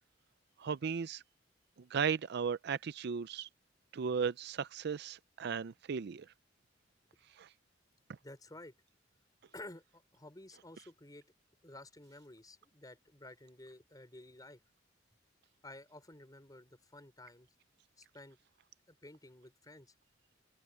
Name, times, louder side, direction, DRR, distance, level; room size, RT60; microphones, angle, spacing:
voice 1, 0.6-1.2 1.9-3.5 3.9-6.3 7.4-7.5, right 6 dB, 55° right, 0.4 m, -36 dB
voice 2, 8.2-8.7 9.5-11.3 11.6-14.6 15.6-17.5 18.0-18.4 18.9-19.9, left 1 dB, 20° left, 4.3 m, -53 dB
open air
head